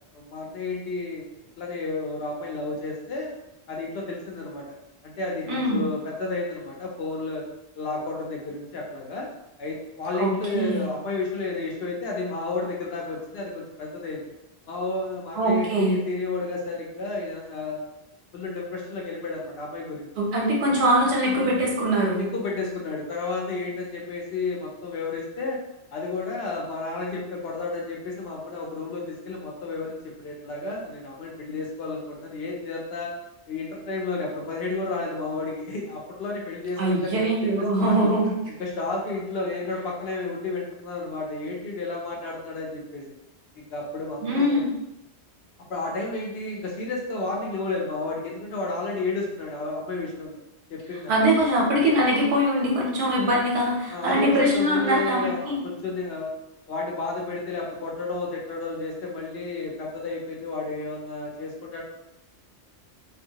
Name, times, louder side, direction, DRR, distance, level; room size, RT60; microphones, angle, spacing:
voice 1, 0.1-1.3 1.6-3.3 3.7-4.8 5.0-7.4 7.8-9.3 9.6-14.2 14.7-17.8 18.3-20.1 22.2-25.6 25.9-33.1 33.5-38.1 38.5-43.1 43.6-44.6 45.7-50.4 50.7-51.2 53.9-56.3 56.7-61.8, left 3 dB, 65° left, -1 dB, 0.8 m, -32 dB
voice 2, 5.5-5.9 10.1-10.8 15.3-16.0 20.2-22.2 36.8-38.4 44.2-44.7 51.1-55.6, right 1 dB, 70° right, -3 dB, 1.1 m, -22 dB
2.6 x 2.5 x 2.8 m, 0.90 s
omnidirectional pair, 1.1 m